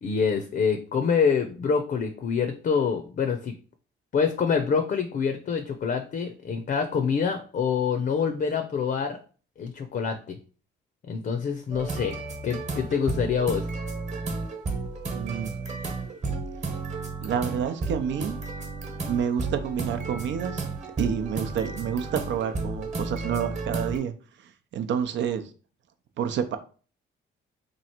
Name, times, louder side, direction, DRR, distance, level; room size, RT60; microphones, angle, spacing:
voice 1, 0.0-3.5 4.1-9.2 9.6-10.4 11.1-12.2 12.4-13.7, left 6 dB, 45° left, 6 dB, 0.6 m, -26 dB
sound 1, 11.7-24.0, right 3 dB, 35° right, 1.1 m, -33 dB
voice 2, 15.1-15.5 17.2-18.4 19.1-20.7 21.0-24.1 24.4-25.5 26.2-26.6, right 8 dB, 70° right, 8 dB, 0.6 m, -29 dB
3.0 x 2.5 x 4.3 m, 0.39 s
cardioid pair, 90°, 20 cm